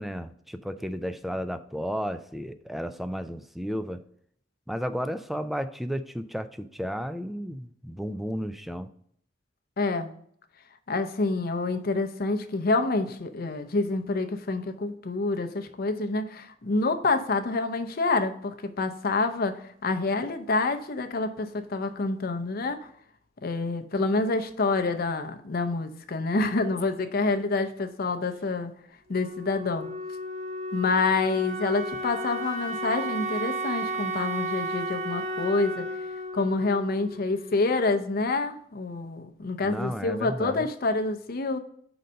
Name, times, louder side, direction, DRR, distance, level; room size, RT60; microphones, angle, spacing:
voice 1, 0.0-4.0 4.7-8.9 39.6-40.7, equal, ahead, 10 dB, 0.3 m, -33 dB
voice 2, 9.8-10.1 10.9-22.8 23.4-28.7 29.1-29.9 30.7-35.9 36.3-41.6, left 3 dB, 55° left, 7 dB, 0.6 m, -27 dB
Wind instrument woodwind instrument, 29.1-37.8, right 1 dB, 40° right, 0.9 m, -33 dB
5.2 x 3.9 x 5.5 m, 0.64 s
head